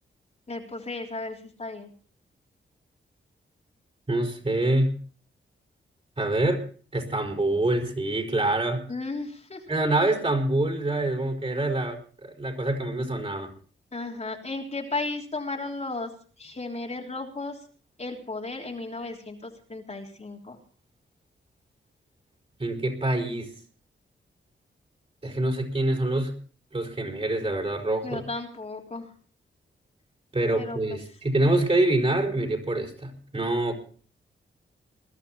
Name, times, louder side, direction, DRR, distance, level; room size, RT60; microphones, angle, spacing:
voice 1, 0.5-1.9 8.9-9.6 10.0-10.1 13.9-16.1 16.4-17.6 18.0-20.6 28.0-29.1 30.6-31.0, left 3 dB, 35° left, 0 dB, 3.5 m, -34 dB
voice 2, 4.1-4.9 6.2-6.6 6.9-8.8 9.7-13.5 22.6-23.5 25.2-26.3 26.7-28.2 30.3-33.7, right 2 dB, 30° right, 2 dB, 5.1 m, -25 dB
21.0 x 12.5 x 4.3 m, 0.42 s
cardioid pair, 85°, 20 cm